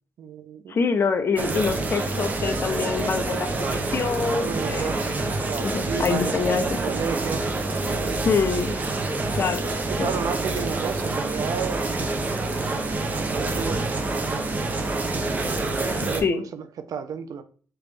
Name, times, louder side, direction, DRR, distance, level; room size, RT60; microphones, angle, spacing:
voice 1, 0.2-0.8 4.4-5.0 5.4-8.3 9.7-12.0 13.3-14.0 15.5-17.4, right 7 dB, 70° right, 0.5 m, -33 dB
voice 2, 0.7-5.0 5.6-6.7 8.2-8.7 9.3-9.7 10.0-10.1 16.0-16.4, left 5 dB, 40° left, 0.6 m, -25 dB
sound 1, 1.4-16.2, right 2 dB, 25° right, 0.6 m, -27 dB
3.8 x 3.4 x 3.3 m
wide cardioid pair, 155°, 6 cm